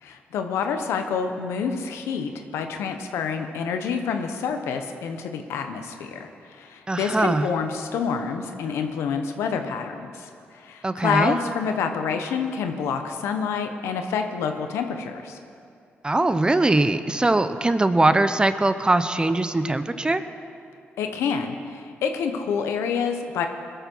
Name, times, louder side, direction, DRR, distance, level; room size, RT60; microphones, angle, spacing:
voice 1, 0.0-15.4 21.0-23.5, left 6 dB, 90° left, 6 dB, 1.1 m, -28 dB
voice 2, 6.9-7.5 10.8-11.4 16.0-20.2, right 2 dB, 20° right, 11 dB, 0.9 m, -21 dB
20.5 x 13.0 x 4.7 m, 2.4 s
cardioid pair, 70°, 4 cm